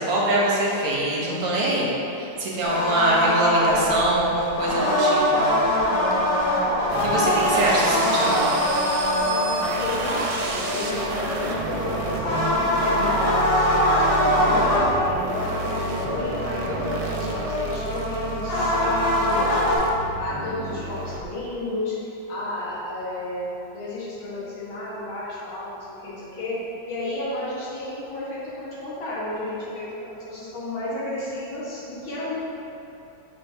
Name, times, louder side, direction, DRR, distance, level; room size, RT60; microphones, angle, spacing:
voice 1, 0.0-1.9 2.2-5.5 7.0-8.4, right 1 dB, 55° right, -5 dB, 1.3 m, -23 dB
sound 1, 2.6-19.8, left 1 dB, 60° left, 1.4 m, -23 dB
sound 2, 6.9-21.3, right 3 dB, 75° right, 1.3 m, -32 dB
voice 2, 9.8-19.9 20.2-29.9 30.1-32.4, left 1 dB, 85° left, -7 dB, 2.2 m, -32 dB
6.7 x 3.4 x 4.4 m, 2.9 s
omnidirectional pair, 2.2 m